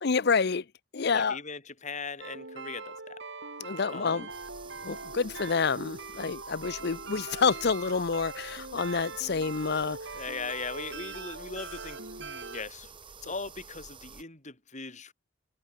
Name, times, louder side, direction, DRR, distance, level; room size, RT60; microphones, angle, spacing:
voice 1, 0.0-0.6 0.9-1.4 3.6-4.3 4.8-10.2, left 5 dB, 60° left, 0.7 m, -28 dB
voice 2, 1.1-3.2 3.9-4.2 10.1-15.1, left 4 dB, 40° left, 5.2 m, -39 dB
sound 1, 2.2-12.6, right 3 dB, 65° right, 7.0 m, -42 dB
sound 2, 4.3-14.2, right 5 dB, 25° right, 2.2 m, -50 dB
head